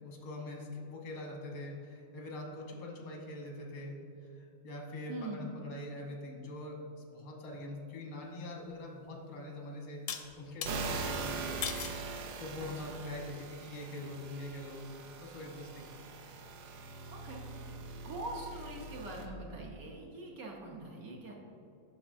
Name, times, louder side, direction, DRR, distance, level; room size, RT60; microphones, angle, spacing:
voice 1, 0.0-4.0 4.4-6.8 7.1-11.6 12.0-14.9 15.2-15.9, left 1 dB, 90° left, 0 dB, 1.8 m, -43 dB
voice 2, 5.1-5.5 12.6-13.0 17.1-17.8 18.0-21.3, right 2 dB, 60° right, -1 dB, 1.1 m, -44 dB
sound 1, 8.7-8.8 10.1-10.7 11.6-12.0 12.7-13.1, left 8 dB, 70° left, 0.9 m, -39 dB
sound 2, 10.7-19.3, right 3 dB, 80° right, 1.4 m, -42 dB
8.6 x 6.0 x 2.6 m, 2.7 s
omnidirectional pair, 2.0 m